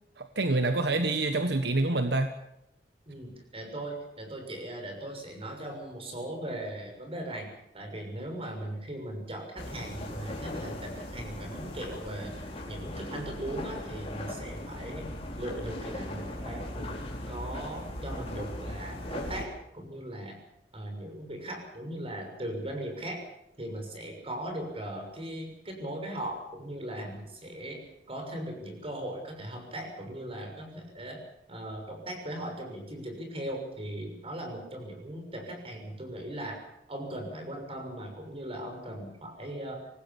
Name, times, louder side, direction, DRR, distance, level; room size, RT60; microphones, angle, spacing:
voice 1, 0.2-2.3, right 2 dB, 70° right, 7 dB, 1.4 m, -27 dB
voice 2, 3.1-15.1 15.4-17.0 17.3-20.4 20.7-23.2 23.6-27.8 28.1-31.2 31.5-36.6 36.9-39.9, right 1 dB, 35° right, 3 dB, 6.5 m, -38 dB
sound 1, 9.6-19.4, left 1 dB, 35° left, 4.8 m, -38 dB
24.5 x 19.0 x 7.2 m, 0.82 s
head